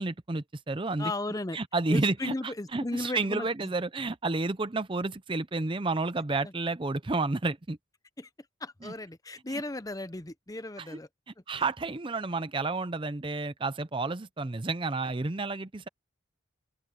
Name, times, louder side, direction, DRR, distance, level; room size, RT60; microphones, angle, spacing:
voice 1, 0.0-1.1 1.5-7.8 8.8-8.9 9.5-9.6 10.8-11.0 11.5-15.9, right 3 dB, 25° right, 0.6 m, -31 dB
voice 2, 1.0-1.6 1.9-3.7 6.4-6.5 8.2-8.3 8.6-11.1, left 2 dB, 15° left, 0.7 m, -35 dB
open air
head